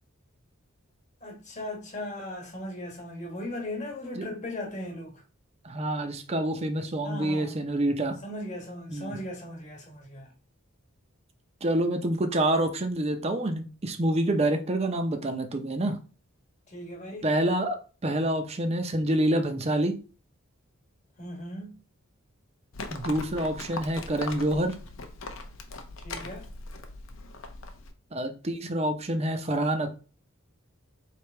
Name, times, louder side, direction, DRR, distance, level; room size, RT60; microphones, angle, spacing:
voice 1, 1.2-5.2 7.0-7.6 8.2-10.3 16.7-17.3 21.2-21.8 26.0-26.5, left 1 dB, 35° left, 1.3 m, -38 dB
voice 2, 5.6-8.2 8.9-9.1 11.6-16.0 17.2-20.0 22.9-24.8 28.1-29.9, right 1 dB, 30° right, 0.6 m, -27 dB
Livestock farm animals working animals, 22.7-27.9, left 2 dB, 70° left, 0.6 m, -40 dB
3.3 x 2.9 x 4.4 m
head